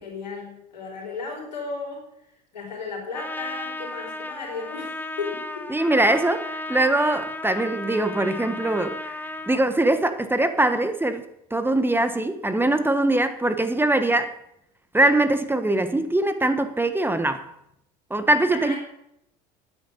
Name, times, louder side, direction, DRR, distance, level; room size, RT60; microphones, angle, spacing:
voice 1, 0.0-2.1 2.5-5.7 18.5-18.8, left 4 dB, 90° left, -1 dB, 4.2 m, -34 dB
Trumpet, 3.1-9.6, left 2 dB, 10° left, 1.2 m, -34 dB
voice 2, 5.7-9.2 9.5-11.2 11.5-14.3 14.9-17.5 18.1-18.7, right 2 dB, 10° right, 10 dB, 1.4 m, -22 dB
9.6 x 8.8 x 7.9 m, 0.77 s
hypercardioid pair, 65°, 21 cm